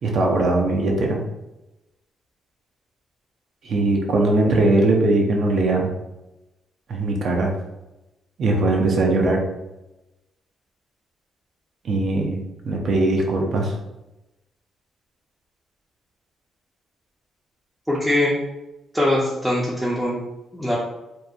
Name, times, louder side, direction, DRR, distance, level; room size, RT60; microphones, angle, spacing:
voice 1, 0.0-1.2 3.6-5.9 6.9-7.5 8.4-9.4 11.8-12.4 12.6-13.7, right 2 dB, 60° right, 1 dB, 0.5 m, -20 dB
voice 2, 17.9-18.3 18.9-20.2 20.5-20.8, left 1 dB, ahead, -7 dB, 0.5 m, -21 dB
2.8 x 2.1 x 2.3 m, 0.97 s
cardioid pair, 90°, 0 cm